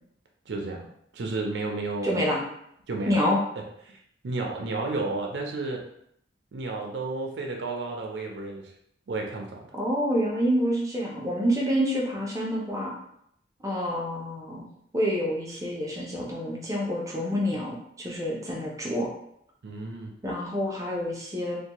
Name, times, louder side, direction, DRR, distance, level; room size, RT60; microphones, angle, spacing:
voice 1, 0.5-2.2 2.9-3.2 3.9-5.8 6.5-8.7 9.1-9.6 19.6-20.1, right 3 dB, 85° right, 1 dB, 0.5 m, -32 dB
voice 2, 2.0-2.4 3.1-3.4 9.8-12.9 13.6-14.7 14.9-19.1 20.2-21.6, equal, 20° right, -3 dB, 0.5 m, -27 dB
2.6 x 2.2 x 2.9 m, 0.72 s
head